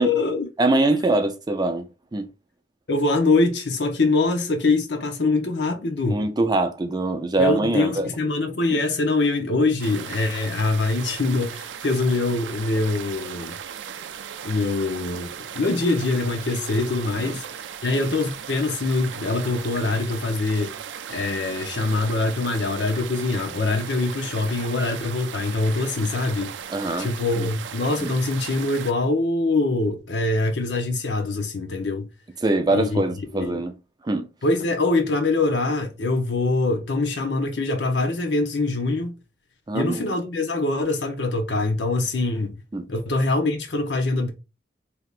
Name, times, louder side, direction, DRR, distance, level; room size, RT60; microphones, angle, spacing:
voice 1, 0.0-0.5 2.9-6.2 7.4-13.6 14.4-15.3 15.5-17.4 17.8-20.7 21.1-26.6 27.0-32.1 32.7-33.0 33.3-33.6 34.4-39.2 39.7-42.6 42.9-44.3, left 3 dB, 70° left, 0.8 m, -23 dB
voice 2, 0.6-1.8 2.1-2.3 6.1-8.1 17.3-17.4 26.7-27.1 27.4-27.5 28.0-28.1 32.4-33.7 34.0-34.3 39.7-40.1 42.7-42.8, right 2 dB, 25° right, 0.4 m, -23 dB
sound 1, 9.8-28.9, right 8 dB, 85° right, 0.4 m, -37 dB
3.3 x 2.8 x 2.4 m
head